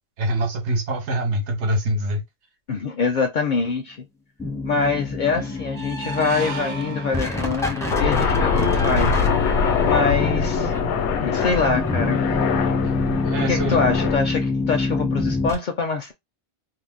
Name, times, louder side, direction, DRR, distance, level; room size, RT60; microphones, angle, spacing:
voice 1, 0.2-2.2 13.2-13.8, right 1 dB, 80° right, 1.1 m, -24 dB
voice 2, 2.7-4.1 4.6-9.2 9.5-9.6 9.9-10.7 11.2-12.2 13.4-16.1, left 4 dB, 60° left, 0.5 m, -24 dB
sound 1, 4.4-15.5, left 2 dB, 5° left, 0.4 m, -27 dB
sound 2, 5.4-8.6, right 3 dB, 50° right, 0.6 m, -35 dB
Aircraft, 7.9-14.2, left 6 dB, 80° left, 0.9 m, -23 dB
2.6 x 2.0 x 3.4 m
omnidirectional pair, 1.2 m